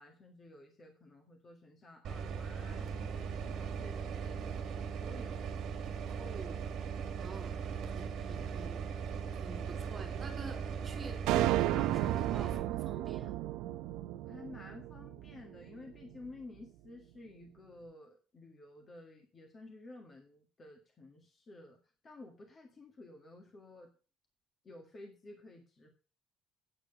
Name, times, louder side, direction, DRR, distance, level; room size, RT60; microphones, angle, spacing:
voice 1, 0.0-5.4 14.3-23.9 24.6-25.9, left 2 dB, 25° left, 1 dB, 1.7 m, -53 dB
sound 1, 2.0-12.6, right 6 dB, 50° right, 1.8 m, -39 dB
voice 2, 6.0-6.7 7.1-8.9 9.3-13.4, right 3 dB, 20° right, 3 dB, 2.2 m, -48 dB
sound 2, 11.3-15.7, right 14 dB, 70° right, 0.6 m, -33 dB
9.0 x 7.7 x 5.8 m, 0.36 s
cardioid pair, 170°, 0 cm